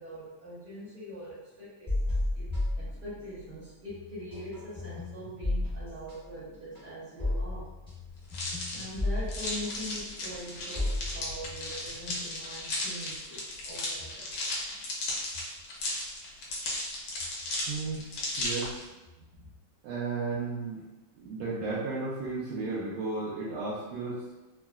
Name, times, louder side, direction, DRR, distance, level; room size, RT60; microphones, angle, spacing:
voice 1, 0.0-7.7 8.7-15.1, equal, 60° right, -10 dB, 1.4 m, -43 dB
sound 1, 1.9-3.6 3.9-12.5, left 1 dB, 5° left, 0.8 m, -34 dB
sound 2, 8.3-18.8, left 2 dB, 90° left, 1.6 m, -35 dB
voice 2, 17.7-18.0 18.4-18.9 19.8-20.8 21.1-24.3, right 3 dB, 85° right, -8 dB, 1.4 m, -34 dB
4.0 x 2.0 x 2.2 m, 1.1 s
omnidirectional pair, 2.2 m